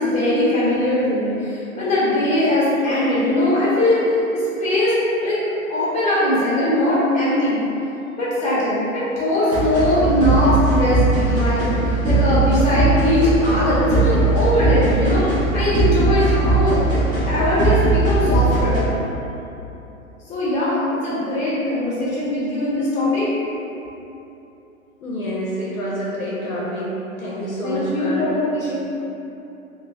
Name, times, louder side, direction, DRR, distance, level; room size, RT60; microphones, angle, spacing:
voice 1, 0.0-5.4 5.7-7.6 8.2-17.0 17.3-18.8 20.3-23.3 27.6-28.7, left 1 dB, 15° left, -10 dB, 0.8 m, -20 dB
sound 1, 9.5-18.8, right 3 dB, 10° right, 0.5 m, -19 dB
voice 2, 25.0-28.3, equal, 80° left, -6 dB, 0.6 m, -27 dB
3.1 x 2.2 x 2.4 m, 2.9 s
figure-of-eight pair, 100°, 41 cm